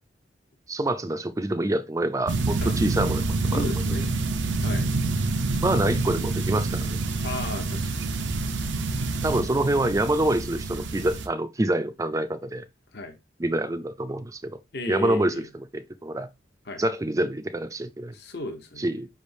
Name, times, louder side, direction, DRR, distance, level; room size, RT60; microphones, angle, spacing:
voice 1, 0.7-3.6 5.6-7.0 9.2-12.6 13.4-14.6 14.9-15.4 15.7-16.3 16.8-18.2 18.8-19.1, right 1 dB, 20° right, 0.4 m, -26 dB
sound 1, 2.3-11.3, right 3 dB, 90° right, 0.7 m, -27 dB
voice 2, 3.5-4.1 4.6-4.9 7.2-8.2 12.9-13.2 14.7-15.5 16.6-16.8 18.1-18.9, left 1 dB, 60° left, 0.9 m, -34 dB
5.6 x 3.4 x 2.6 m
head